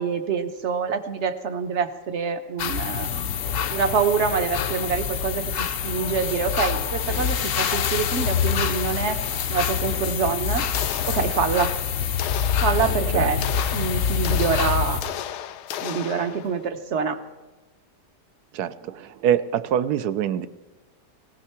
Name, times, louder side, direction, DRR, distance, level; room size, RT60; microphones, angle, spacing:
voice 1, 0.0-3.1 3.7-9.2 9.5-10.6 11.1-11.7 12.6-13.4 13.7-15.1 15.8-17.2, right 6 dB, 50° right, 9 dB, 1.0 m, -26 dB
sound 1, 2.6-15.0, left 7 dB, 60° left, 0.9 m, -26 dB
sound 2, 10.7-11.8 12.2-16.7, left 10 dB, 75° left, 1.2 m, -35 dB
voice 2, 18.5-20.5, right 10 dB, 70° right, 14 dB, 1.1 m, -24 dB
17.5 x 15.5 x 4.4 m, 1.2 s
omnidirectional pair, 1.8 m